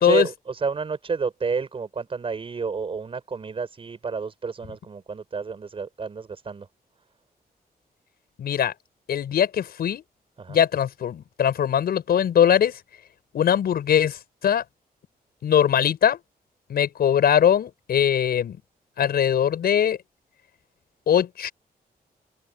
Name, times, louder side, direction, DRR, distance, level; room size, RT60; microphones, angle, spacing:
voice 1, 0.0-6.7 10.4-10.6, right 5 dB, 35° right, 5.6 m, -30 dB
voice 2, 8.4-8.7 9.1-10.0 10.5-12.7 13.3-14.2 14.4-14.6 15.4-16.2 16.7-18.6 19.0-20.0 21.1-21.5, left 9 dB, 75° left, 5.8 m, -21 dB
open air
wide cardioid pair, 160°, 16 cm